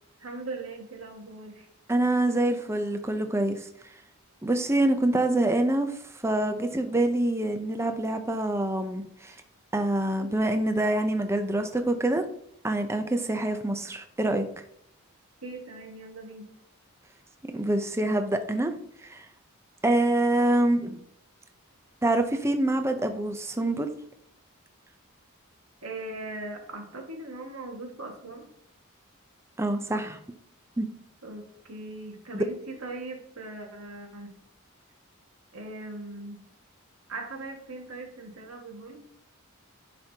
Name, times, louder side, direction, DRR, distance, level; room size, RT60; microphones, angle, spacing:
voice 1, 0.2-1.7 15.4-16.5 25.8-28.4 31.2-34.3 35.5-36.4 37.1-39.0, right 2 dB, 90° right, 2 dB, 1.8 m, -40 dB
voice 2, 1.9-3.6 4.4-5.9 6.2-9.3 9.7-12.2 12.6-14.4 17.5-18.7 19.0-19.3 19.8-21.0 22.0-23.9 29.6-30.2 30.8-30.9, right 1 dB, 15° right, 7 dB, 0.6 m, -25 dB
10.5 x 5.2 x 2.8 m, 0.71 s
head